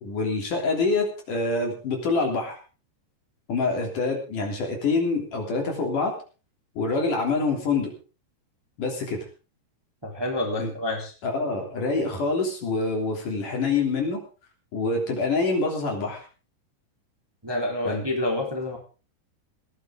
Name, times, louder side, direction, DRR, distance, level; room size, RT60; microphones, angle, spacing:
voice 1, 0.0-2.6 3.5-6.1 6.8-7.9 8.8-9.2 10.6-10.7 11.2-14.2 14.7-16.2 17.9-18.0, left 3 dB, 50° left, 2 dB, 4.6 m, -26 dB
voice 2, 10.0-11.1 17.4-18.8, left 1 dB, 5° right, 0 dB, 3.2 m, -28 dB
19.5 x 14.5 x 3.8 m, 0.36 s
omnidirectional pair, 5.0 m